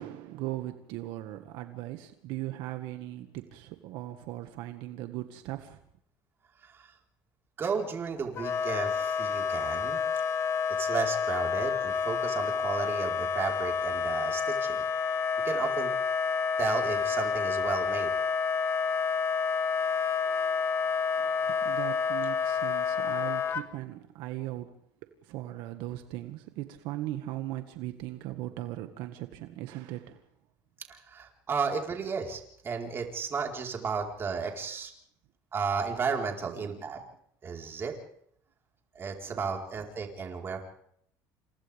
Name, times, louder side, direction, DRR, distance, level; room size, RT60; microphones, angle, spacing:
voice 1, 0.0-5.8 21.2-24.7 25.2-30.2 39.3-39.4, right 15 dB, 75° right, 1.8 m, -38 dB
voice 2, 7.6-10.0 10.8-14.8 15.4-15.9 16.6-18.1 30.9-34.9 35.5-37.0 37.4-37.9 38.9-40.6, right 5 dB, 30° right, 4.5 m, -33 dB
Wind instrument woodwind instrument, 8.4-23.6, left 6 dB, 35° left, 1.7 m, -29 dB
29.5 x 28.0 x 3.6 m
cardioid pair, 140°, 8 cm